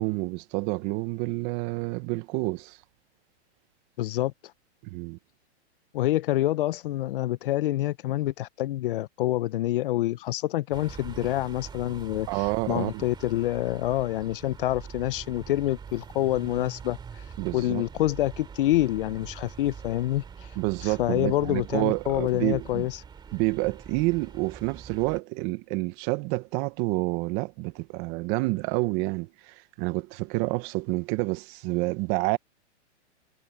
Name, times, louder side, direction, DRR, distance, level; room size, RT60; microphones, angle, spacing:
voice 1, 0.0-2.8 4.8-5.2 12.3-13.0 17.4-17.8 20.6-22.9 23.3-32.4, right 23 dB, 30° right, 0.8 m, -28 dB
voice 2, 4.0-4.3 5.9-17.2 17.5-20.2 20.8-23.0, left 15 dB, 50° left, 0.6 m, -27 dB
sound 1, 10.7-25.2, right 6 dB, 10° right, 2.4 m, -44 dB
hypercardioid pair, 150°, 35 cm